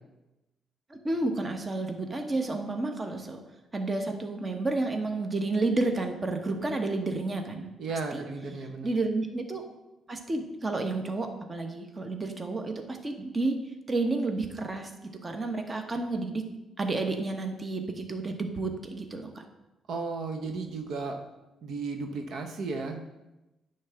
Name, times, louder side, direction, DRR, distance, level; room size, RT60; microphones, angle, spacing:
voice 1, 0.9-3.4 3.7-7.7 8.1-8.2 8.8-9.6 10.1-13.6 13.9-14.9 15.2-16.4 16.8-19.4, right 2 dB, 30° right, 5 dB, 1.1 m, -31 dB
voice 2, 7.8-8.9 19.9-21.2 21.6-23.0, right 4 dB, 70° right, 4 dB, 0.9 m, -34 dB
9.6 x 3.4 x 7.0 m, 1.0 s
cardioid pair, 90°, 0 cm